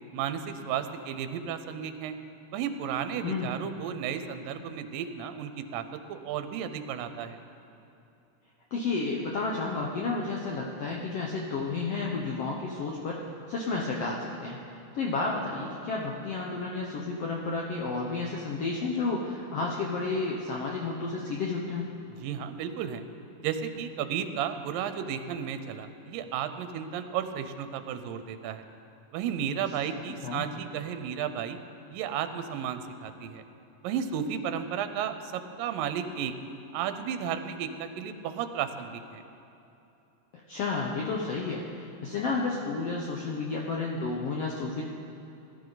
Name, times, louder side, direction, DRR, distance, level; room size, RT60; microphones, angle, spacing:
voice 1, 0.1-2.2 2.5-7.4 22.1-23.0 23.4-28.6 29.1-31.6 31.9-33.4 33.8-36.3 36.7-39.2, right 8 dB, 80° right, 9 dB, 2.4 m, -33 dB
voice 2, 8.7-13.2 13.5-14.6 14.9-21.9 30.2-30.4 40.5-44.8, left 3 dB, 70° left, -2 dB, 1.5 m, -31 dB
19.0 x 12.0 x 4.0 m, 2.8 s
omnidirectional pair, 4.0 m